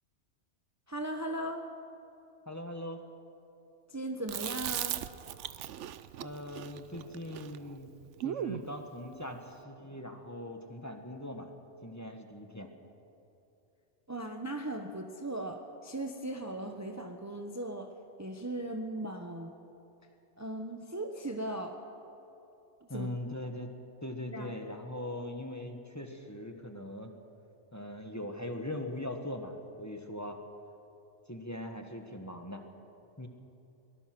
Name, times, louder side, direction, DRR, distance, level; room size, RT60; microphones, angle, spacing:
voice 1, 0.9-1.7 3.9-5.1 14.1-17.9 18.2-19.6 20.4-21.8 22.8-23.1 24.3-24.5, right 1 dB, 15° right, 4 dB, 1.0 m, -38 dB
voice 2, 2.5-3.0 6.2-7.9 8.2-11.5 11.8-12.7 22.9-23.7 24.0-27.1 27.7-30.4 31.3-32.6 33.2-33.3, left 1 dB, 15° left, 4 dB, 1.4 m, -40 dB
Chewing mastication, 4.3-8.7, right 11 dB, 80° right, 1.0 m, -38 dB
23.5 x 19.5 x 6.1 m, 2.9 s
omnidirectional pair, 1.2 m